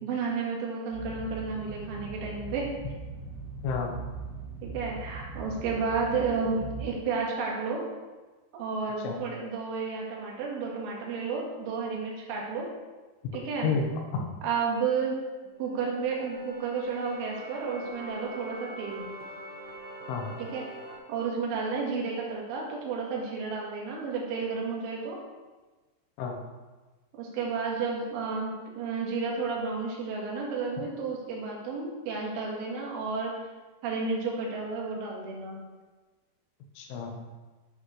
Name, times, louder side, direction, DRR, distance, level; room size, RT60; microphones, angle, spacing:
voice 1, 0.0-2.7 4.6-7.8 8.5-12.7 13.3-13.7 14.4-15.2 15.6-19.1 20.4-20.7 21.1-25.2 27.2-33.4 33.8-35.6, right 4 dB, 90° right, -2 dB, 4.2 m, -32 dB
sound 1, 0.9-6.9, right 5 dB, 25° right, 3.6 m, -40 dB
voice 2, 3.6-4.0 9.0-9.2 13.2-13.4 13.6-14.3 20.1-20.3 26.2-26.4 36.8-37.3, left 5 dB, 85° left, 2 dB, 3.6 m, -31 dB
sound 2, 15.4-21.0, right 2 dB, 70° right, 1.5 m, -44 dB
10.0 x 8.6 x 3.2 m, 1.2 s
omnidirectional pair, 5.4 m